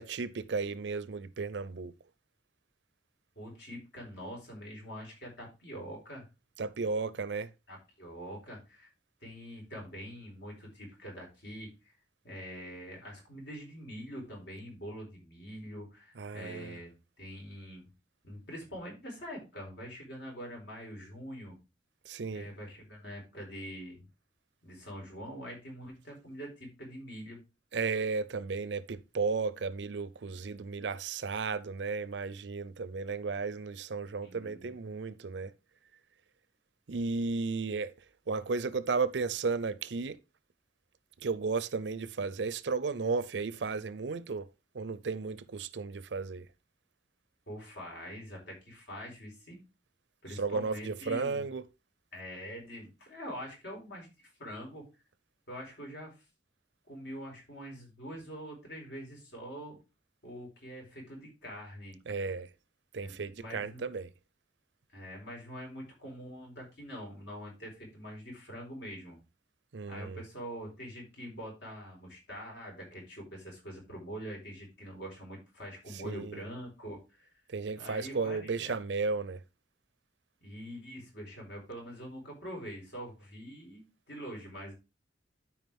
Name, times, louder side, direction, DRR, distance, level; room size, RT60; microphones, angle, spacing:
voice 1, 0.0-1.9 6.6-7.5 16.2-16.8 22.0-22.5 27.7-35.5 36.9-37.9 38.3-40.2 41.2-44.5 44.7-46.5 50.3-51.6 62.1-62.5 62.9-64.1 69.7-70.2 75.9-76.4 77.5-79.4, right 4 dB, 70° right, 0.6 m, -34 dB
voice 2, 3.4-6.3 7.7-8.9 9.2-11.7 12.2-16.9 17.2-17.9 18.2-21.6 22.3-24.0 24.6-27.4 34.2-34.7 47.5-49.6 50.2-51.5 52.1-54.9 55.5-56.2 56.9-59.8 60.2-62.0 63.0-63.8 64.9-69.2 69.9-77.3 77.8-78.7 80.4-84.7, equal, 70° left, 4.6 m, -44 dB
12.5 x 4.8 x 3.5 m
head